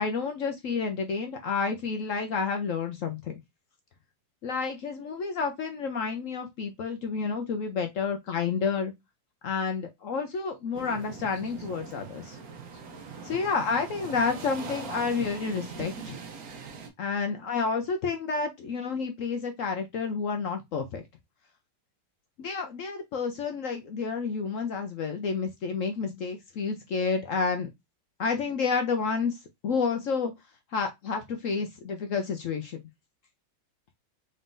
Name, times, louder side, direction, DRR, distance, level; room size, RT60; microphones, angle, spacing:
voice 1, 0.0-3.4 4.4-8.9 9.4-12.4 13.2-16.1 17.0-21.0 22.4-27.7 28.2-30.3 30.7-32.8, left 5 dB, 70° left, 0.7 m, -30 dB
sound 1, 10.7-16.9, right 5 dB, 55° right, 1.2 m, -41 dB
4.0 x 3.6 x 2.5 m
omnidirectional pair, 2.0 m